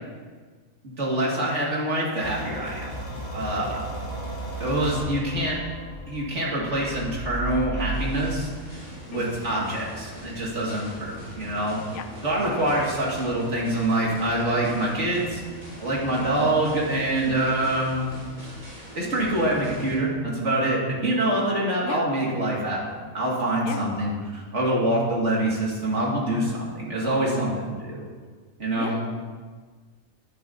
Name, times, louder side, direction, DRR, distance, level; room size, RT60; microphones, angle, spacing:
voice 1, 0.8-2.9 3.3-3.9 4.6-5.6 6.1-8.5 9.1-11.8 12.2-15.4 15.8-18.1 18.9-28.1 28.6-29.0, right 1 dB, 55° right, -4 dB, 2.5 m, -25 dB
sound 1, 2.2-8.1, right 1 dB, 30° left, 2.3 m, -34 dB
sound 2, 7.9-20.0, equal, 10° right, 3.2 m, -42 dB
voice 2, 16.2-16.6 21.8-22.0 23.7-23.8 28.8-29.1, left 5 dB, 60° left, 7 dB, 0.6 m, -35 dB
11.0 x 10.5 x 2.8 m, 1.5 s
omnidirectional pair, 1.5 m